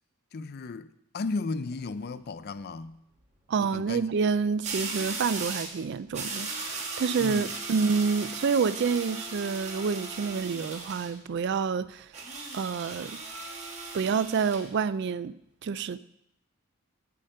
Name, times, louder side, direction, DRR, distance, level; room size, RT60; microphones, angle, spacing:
voice 1, 0.3-3.0 3.6-4.3 7.2-7.5, left 3 dB, 45° left, 0.4 m, -35 dB
sound 1, 1.5-1.8 4.6-5.8 6.1-11.1 12.1-14.7, right 3 dB, 30° right, 1.2 m, -37 dB
voice 2, 3.5-12.1 12.5-13.2 13.9-15.3 15.6-16.0, right 5 dB, 50° right, 0.3 m, -28 dB
8.5 x 5.0 x 7.7 m
head